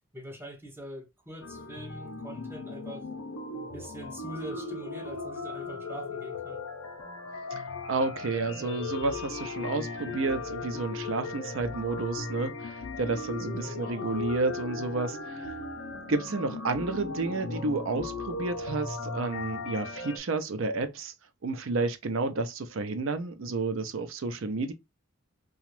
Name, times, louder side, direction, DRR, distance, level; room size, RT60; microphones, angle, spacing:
voice 1, 0.1-3.1 3.6-6.6 13.7-14.1, right 1 dB, 10° right, 0.6 m, -43 dB
sound 1, 1.4-20.2, left 3 dB, 85° left, 0.7 m, -37 dB
voice 2, 7.9-15.5 16.1-21.1 21.4-24.7, right 3 dB, 65° right, 0.5 m, -31 dB
2.9 x 2.3 x 3.0 m
head